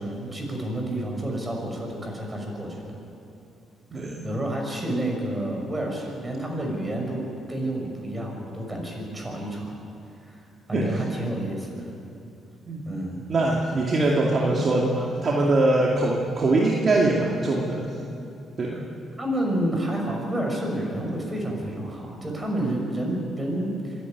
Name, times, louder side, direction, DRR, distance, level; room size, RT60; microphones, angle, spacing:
voice 1, 0.0-3.0 3.9-7.2 7.5-9.8 10.3-10.4 10.7-11.9 12.9-13.3 19.2-23.9, right 1 dB, 20° right, 1 dB, 5.9 m, -29 dB
voice 2, 3.9-4.3 10.7-10.9 12.7-12.8 13.3-17.9 18.6-18.8, right 2 dB, 45° right, -2 dB, 2.3 m, -22 dB
25.5 x 11.0 x 9.6 m, 2.7 s
cardioid pair, 90°, 0 cm